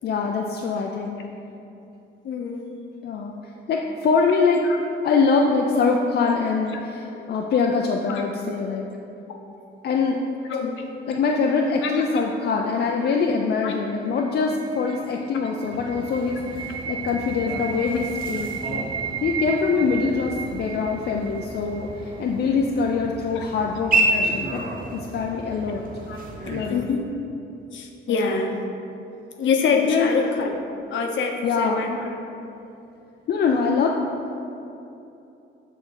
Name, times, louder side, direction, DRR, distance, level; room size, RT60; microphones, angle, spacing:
voice 1, 0.0-1.2 3.0-3.4 3.7-4.7 5.0-8.9 9.8-10.2 11.1-18.9 19.2-24.6 24.9-25.8 26.5-26.9 28.1-28.4 29.8-30.1 31.4-31.9 33.3-34.0, left 5 dB, 55° left, 1 dB, 0.5 m, -23 dB
voice 2, 2.2-2.6 4.6-4.8 6.7-6.8 8.1-8.2 10.5-10.7 11.8-12.2 13.6-13.7 23.4-23.5 24.1-24.2 26.1-26.2 26.5-27.0 27.7-28.5 29.4-30.6 30.9-32.1, left 5 dB, 70° left, 2 dB, 0.9 m, -25 dB
sound 1, 13.4-22.4, right 7 dB, 25° right, 0.3 m, -35 dB
sound 2, 15.7-26.8, right 2 dB, 45° right, 1.0 m, -31 dB
7.3 x 3.8 x 6.4 m, 2.8 s
cardioid pair, 125°, 20 cm